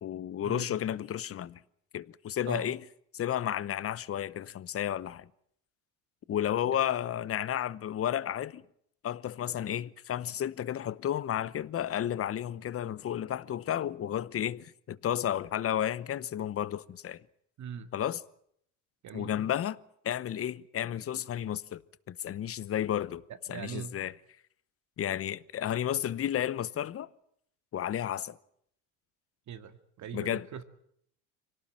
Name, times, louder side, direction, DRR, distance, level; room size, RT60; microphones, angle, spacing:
voice 1, 0.0-1.6 1.9-2.8 3.1-5.3 6.3-8.6 9.0-17.2 17.9-18.2 19.1-19.8 20.0-21.8 22.1-23.2 23.5-24.1 25.0-27.1 27.7-28.4 30.1-30.6, left 10 dB, 35° left, 0.9 m, -32 dB
voice 2, 17.6-17.9 19.0-19.4 23.5-24.0 29.5-30.6, right 8 dB, 50° right, 2.1 m, -41 dB
24.5 x 18.0 x 9.0 m
supercardioid pair, 100°, 38 cm